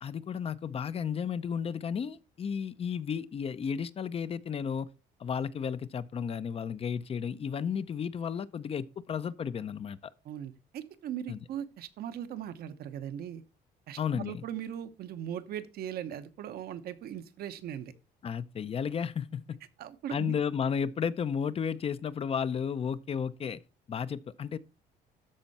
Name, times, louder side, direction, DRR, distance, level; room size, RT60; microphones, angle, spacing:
voice 1, 0.0-4.9 5.2-10.1 11.3-11.4 14.0-14.4 18.2-19.6 20.1-23.6 23.9-24.6, left 7 dB, 35° left, 0.6 m, -33 dB
voice 2, 10.2-13.4 13.9-17.9 19.8-20.3, right 10 dB, 65° right, 1.0 m, -39 dB
13.0 x 4.4 x 4.1 m
cardioid pair, 110°, 17 cm